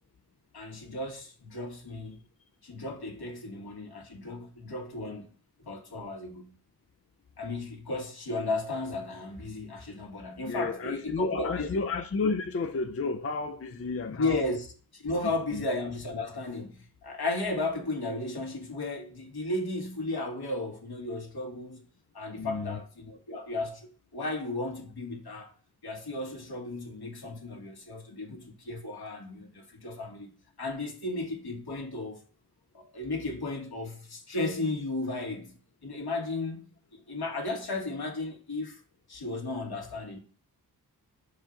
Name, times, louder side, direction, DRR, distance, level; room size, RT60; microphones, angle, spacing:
voice 1, 0.5-2.2 2.6-5.3 5.6-6.5 7.4-11.7 14.1-21.8 22.1-25.5 25.8-30.3 30.6-32.2 32.7-35.5 35.8-38.8 39.1-40.2, left 2 dB, 75° left, 1.8 m, -34 dB
voice 2, 10.5-14.4 15.5-15.6 22.4-22.8, left 4 dB, 35° left, 0.6 m, -31 dB
5.7 x 4.9 x 3.7 m
cardioid pair, 55°, 39 cm